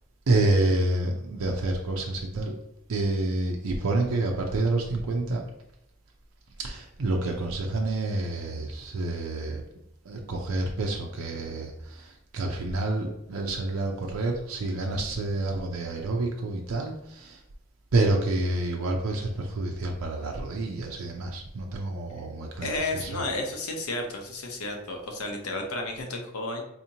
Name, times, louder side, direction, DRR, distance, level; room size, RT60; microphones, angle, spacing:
voice 1, 0.3-2.6 2.9-5.4 6.6-9.6 10.1-17.4 17.9-23.2, right 2 dB, 75° right, 1 dB, 0.5 m, -28 dB
voice 2, 22.6-26.6, left 2 dB, 85° left, 3 dB, 0.8 m, -32 dB
4.2 x 2.8 x 2.7 m, 0.81 s
head